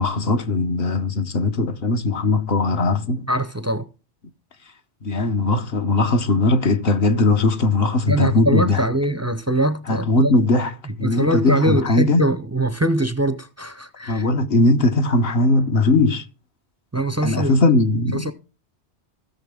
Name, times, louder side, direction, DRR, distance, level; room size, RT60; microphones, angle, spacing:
voice 1, 0.0-3.3 5.0-8.8 9.9-10.7 11.0-12.2 14.1-16.2 17.2-18.3, left 2 dB, 60° left, 1.1 m, -19 dB
voice 2, 3.3-3.9 8.1-10.3 10.9-14.3 16.9-17.6 18.1-18.3, right 1 dB, 20° right, 0.4 m, -22 dB
16.5 x 6.6 x 3.5 m
omnidirectional pair, 1.2 m